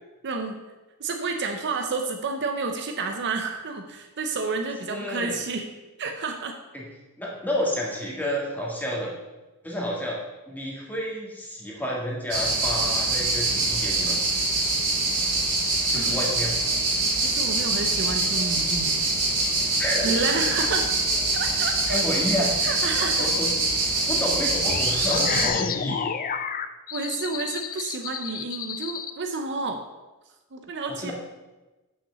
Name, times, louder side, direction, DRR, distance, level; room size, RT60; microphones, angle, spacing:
voice 1, 0.2-0.6 1.0-5.7 6.0-6.6 15.9-16.2 17.2-19.0 20.0-20.9 21.3-22.0 22.6-23.3 23.9-24.1 26.9-29.8 30.5-31.1, right 4 dB, 50° right, 5 dB, 0.7 m, -30 dB
voice 2, 4.9-5.4 6.7-6.8 7.2-9.1 9.6-14.2 15.9-16.5 19.8-20.3 21.9-23.5 24.1-26.1 30.9-31.1, equal, 10° left, -3 dB, 1.8 m, -30 dB
sound 1, 12.3-25.5, right 2 dB, 80° right, 3.2 m, -24 dB
sound 2, 24.7-29.1, left 6 dB, 40° left, 0.4 m, -30 dB
5.9 x 5.7 x 6.8 m, 1.1 s
head